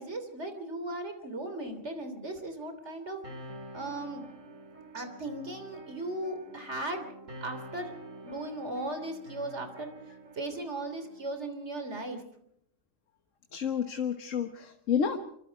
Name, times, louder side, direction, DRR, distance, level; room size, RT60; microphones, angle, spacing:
voice 1, 0.0-3.2 3.7-4.3 4.9-7.1 7.4-7.9 8.2-9.9 10.3-12.2, right 2 dB, 65° right, 7 dB, 3.5 m, -37 dB
sound 1, 3.2-11.3, right 1 dB, 90° right, 4.3 m, -48 dB
voice 2, 13.5-15.2, left 7 dB, 85° left, 6 dB, 1.6 m, -30 dB
25.5 x 24.5 x 4.7 m, 0.72 s
omnidirectional pair, 1.3 m